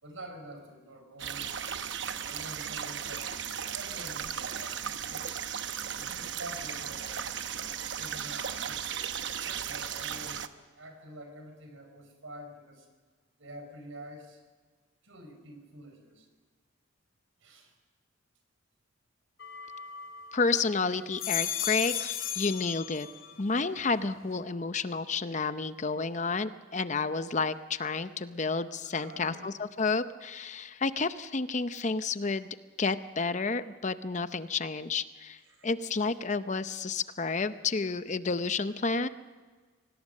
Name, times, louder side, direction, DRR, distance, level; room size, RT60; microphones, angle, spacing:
voice 1, 0.0-1.7 2.3-3.3 3.7-5.3 6.0-7.2 8.0-10.5 10.8-12.9 13.4-14.4 15.0-16.3 17.4-17.7 28.8-29.5 35.4-35.7, right 1 dB, 85° right, 6 dB, 4.7 m, -47 dB
sound 1, 1.2-10.5, right 8 dB, 60° right, 0.9 m, -36 dB
sound 2, 19.4-20.5 21.0-23.4 23.8-24.4, left 10 dB, 75° left, 2.2 m, -35 dB
voice 2, 20.3-23.1 23.4-32.5 32.8-39.1, left 4 dB, 35° left, 12 dB, 0.6 m, -30 dB
24.5 x 18.0 x 6.6 m, 1.4 s
head